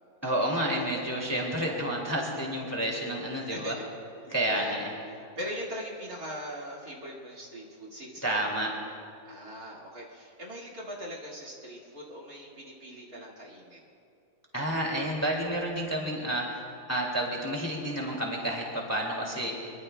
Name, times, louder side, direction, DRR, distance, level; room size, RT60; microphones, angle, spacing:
voice 1, 0.2-3.7 4.3-4.9 8.2-8.7 14.5-19.8, right 1 dB, 10° left, -1 dB, 2.1 m, -30 dB
voice 2, 3.4-3.9 4.2-8.4 9.2-13.8, equal, 50° right, -4 dB, 2.5 m, -41 dB
24.5 x 23.0 x 2.2 m, 2.6 s
omnidirectional pair, 2.0 m